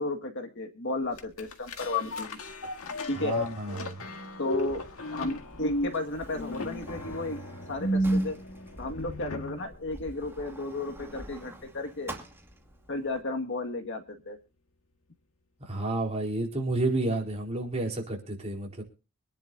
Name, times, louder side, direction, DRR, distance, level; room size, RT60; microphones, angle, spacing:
voice 1, 0.0-2.4 3.1-3.4 4.4-4.8 5.1-7.4 7.7-8.4 8.8-12.2 12.9-14.4, left 2 dB, 55° left, 4 dB, 1.9 m, -33 dB
sound 1, 1.2-9.7 10.2-10.3, left 1 dB, 75° left, 1.8 m, -33 dB
voice 2, 3.1-4.0 15.7-18.8, right 2 dB, 30° right, 0 dB, 4.3 m, -30 dB
Sliding door, 4.6-13.2, right 1 dB, 10° right, 2.2 m, -47 dB
25.5 x 10.5 x 2.7 m, 0.34 s
head